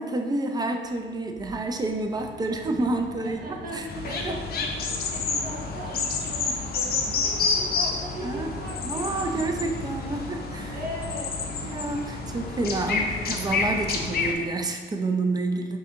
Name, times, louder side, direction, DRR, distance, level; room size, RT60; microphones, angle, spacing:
voice 1, 0.0-3.9 4.2-4.3 8.2-8.5 8.8-10.8 11.6-15.8, right 2 dB, 20° right, 4 dB, 0.4 m, -29 dB
sound 1, 0.8-14.6, right 3 dB, 75° right, 0.7 m, -45 dB
voice 2, 3.2-10.2 10.7-11.3 12.8-13.2, equal, 50° right, -3 dB, 0.9 m, -39 dB
sound 2, 3.9-14.3, left 4 dB, 50° left, 0.5 m, -29 dB
4.6 x 2.6 x 2.8 m, 1.5 s
cardioid pair, 90°, 20 cm